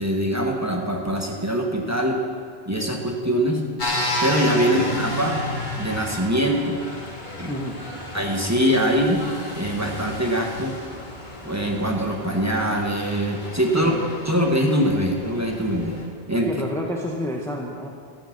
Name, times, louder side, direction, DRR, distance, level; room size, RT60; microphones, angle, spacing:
voice 1, 0.0-2.2 2.7-3.6 4.2-5.4 5.8-6.8 7.4-7.5 8.1-10.8 11.4-13.9 14.3-16.0 16.3-16.5, equal, 15° right, 0 dB, 1.2 m, -23 dB
sound 1, 3.8-16.0, left 1 dB, 50° left, 1.8 m, -32 dB
voice 2, 7.5-7.8 13.7-14.0 16.4-17.9, left 1 dB, 5° left, 0 dB, 0.9 m, -29 dB
12.0 x 9.6 x 5.9 m, 2.1 s
omnidirectional pair, 1.0 m